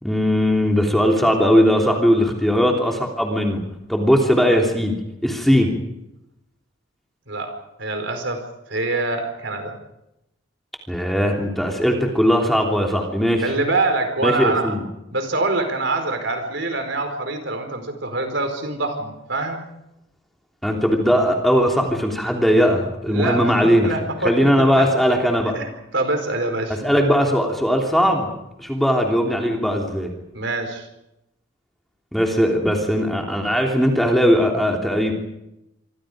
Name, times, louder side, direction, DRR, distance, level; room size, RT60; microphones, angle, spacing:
voice 1, 0.0-3.6 3.9-4.9 5.2-5.7 10.9-13.4 14.2-14.8 20.6-23.9 24.2-25.5 26.8-30.1 32.1-35.1, equal, ahead, 1 dB, 3.2 m, -19 dB
voice 2, 7.8-8.4 8.7-9.8 13.4-14.7 15.1-19.6 23.1-24.9 25.5-26.8 30.3-30.9, right 2 dB, 60° right, 6 dB, 4.6 m, -25 dB
26.5 x 25.5 x 5.1 m, 0.87 s
head